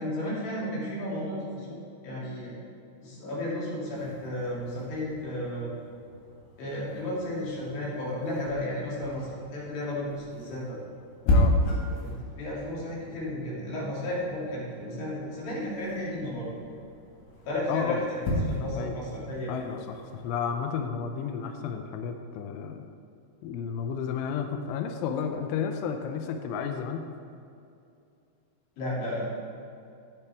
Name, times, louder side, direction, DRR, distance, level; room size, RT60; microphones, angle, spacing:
voice 1, 0.0-2.5 3.0-5.7 6.6-10.8 12.0-16.5 17.4-19.8 28.8-29.3, left 1 dB, 55° left, -7 dB, 4.2 m, -33 dB
sound 1, 4.0-20.7, left 1 dB, 70° left, 4.0 m, -34 dB
voice 2, 11.3-11.6 17.7-18.0 18.5-19.0 19.5-22.9 23.4-27.1, left 7 dB, 85° left, 5 dB, 2.4 m, -32 dB
13.5 x 8.2 x 3.5 m, 2.5 s
omnidirectional pair, 5.6 m